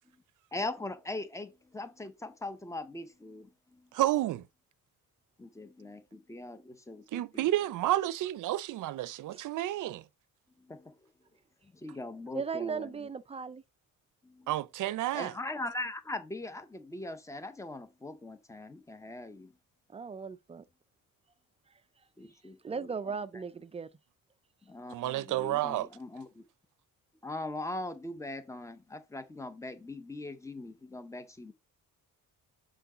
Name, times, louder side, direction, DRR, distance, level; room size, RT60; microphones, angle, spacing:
voice 1, 0.5-3.9 5.4-7.5 10.6-11.0 11.7-13.1 14.2-14.5 15.1-19.5 22.2-22.9 24.6-26.4 27.2-31.5, left 2 dB, 10° left, 0.7 m, -41 dB
voice 2, 3.9-4.4 7.1-10.0 14.5-15.3 24.9-25.9, right 14 dB, 65° right, 0.6 m, -30 dB
voice 3, 12.3-13.6 19.9-20.6 22.6-23.9, right 5 dB, 20° right, 0.3 m, -37 dB
7.0 x 3.7 x 5.0 m
cardioid pair, 155°, 34 cm